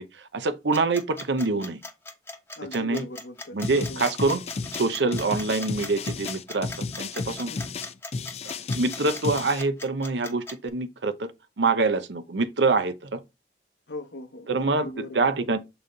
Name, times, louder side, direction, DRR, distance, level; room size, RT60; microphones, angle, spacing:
voice 1, 0.0-1.8 2.7-3.0 3.5-4.4 4.7-6.7 7.0-7.5 8.7-11.3 11.6-13.2 14.5-14.9 15.1-15.6, right 3 dB, 85° right, 0.8 m, -25 dB
sound 1, 0.7-10.7, left 2 dB, 15° left, 0.9 m, -39 dB
voice 2, 2.6-3.6 3.9-4.1 7.5-7.7 13.9-15.6, left 1 dB, 80° left, 0.9 m, -39 dB
sound 2, 3.6-9.6, left 4 dB, 35° left, 0.4 m, -33 dB
7.0 x 3.9 x 3.8 m
head